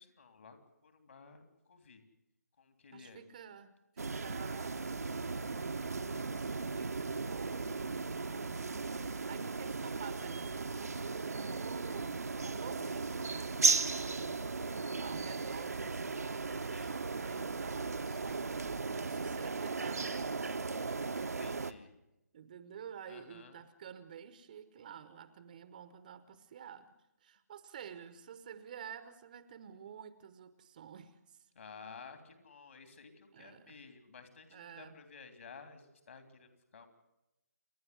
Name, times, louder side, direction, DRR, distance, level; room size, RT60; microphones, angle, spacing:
voice 1, 0.0-1.4 1.7-2.0 2.6-3.2 16.6-17.0 20.8-21.9 23.1-23.6 31.5-36.9, left 5 dB, 50° left, 8 dB, 3.3 m, -54 dB
voice 2, 2.9-21.1 21.5-21.8 22.3-31.5 33.3-33.8 34.5-35.0, right 8 dB, 30° right, 13 dB, 0.9 m, -51 dB
sound 1, 4.0-21.7, right 4 dB, 65° right, 0.9 m, -36 dB
29.0 x 10.5 x 9.5 m, 0.92 s
figure-of-eight pair, 150°, 9 cm